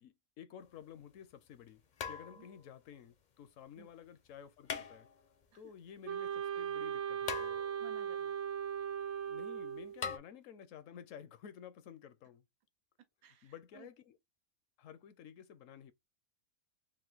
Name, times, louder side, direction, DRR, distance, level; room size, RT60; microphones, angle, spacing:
voice 1, 0.0-5.1 5.5-7.6 9.3-12.4 13.4-14.2 14.8-15.9, left 9 dB, 70° left, 0.9 m, -53 dB
sound 1, 0.6-0.7 2.0-2.7 4.6-5.4 7.3-8.0 10.0-10.2, left 6 dB, 50° left, 0.5 m, -42 dB
Wind instrument woodwind instrument, 6.0-10.0, right 8 dB, 65° right, 0.8 m, -38 dB
voice 2, 7.8-8.4 13.0-13.9, right 8 dB, 85° right, 1.3 m, -58 dB
3.6 x 2.5 x 3.9 m
omnidirectional pair, 1.5 m